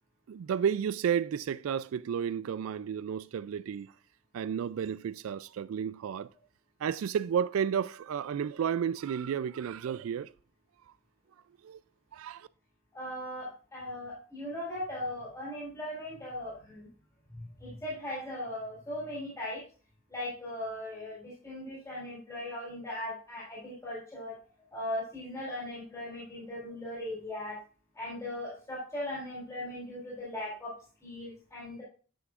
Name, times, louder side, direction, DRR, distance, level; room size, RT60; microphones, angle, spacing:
voice 1, 0.3-3.9 4.3-6.3 6.8-10.3 11.6-11.8 12.1-12.5, right 8 dB, 80° right, 0.3 m, -32 dB
voice 2, 12.9-16.9 17.6-19.6 20.1-24.4 24.7-27.6 27.9-30.7 31.0-31.8, left 1 dB, 15° left, 3.7 m, -38 dB
11.0 x 6.3 x 2.5 m
head